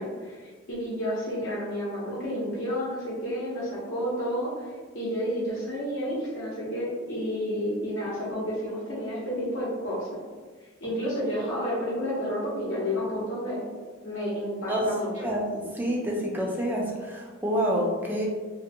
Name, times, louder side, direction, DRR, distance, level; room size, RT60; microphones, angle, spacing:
voice 1, 0.0-4.5 4.9-10.1 10.8-13.6 14.0-15.3, equal, 60° left, -7 dB, 0.7 m, -30 dB
voice 2, 14.7-18.3, equal, 10° right, -2 dB, 0.3 m, -28 dB
2.7 x 2.1 x 2.6 m, 1.4 s
head